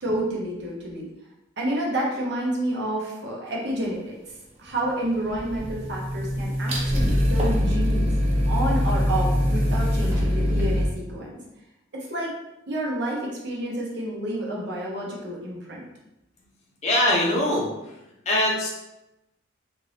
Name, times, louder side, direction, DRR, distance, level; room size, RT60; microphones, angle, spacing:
voice 1, 0.0-1.1 1.6-4.2 4.6-8.1 8.5-11.4 11.9-12.3 12.7-15.8, right 1 dB, 55° right, -3 dB, 0.7 m, -29 dB
sound 1, 4.8-5.7 6.0-10.9, equal, 30° right, 0.4 m, -23 dB
Boom, 5.3-11.1, equal, 10° right, 0.8 m, -31 dB
voice 2, 16.8-17.7 18.3-18.7, left 1 dB, 35° left, -3 dB, 0.6 m, -22 dB
2.6 x 2.5 x 3.2 m, 0.92 s
head